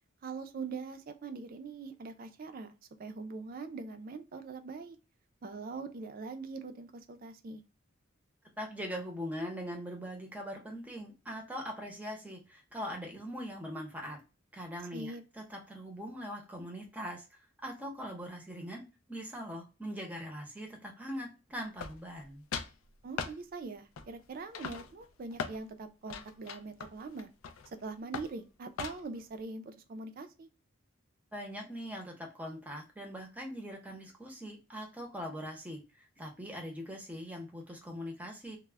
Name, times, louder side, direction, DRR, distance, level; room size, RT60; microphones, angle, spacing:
voice 1, 0.2-2.7 3.0-5.0 5.4-7.6 14.9-15.2 23.0-27.3 27.8-30.5, right 4 dB, 45° right, 7 dB, 0.4 m, -42 dB
voice 2, 8.6-14.2 14.5-22.4 31.3-38.6, equal, 10° right, 1 dB, 0.6 m, -41 dB
sound 1, 21.8-22.2 22.5-22.8 23.2-23.4 24.0-24.2 24.5-25.6 26.1-27.7 28.1-28.4 28.8-29.2, left 6 dB, 85° left, 0.3 m, -40 dB
2.2 x 2.0 x 3.2 m, 0.30 s
head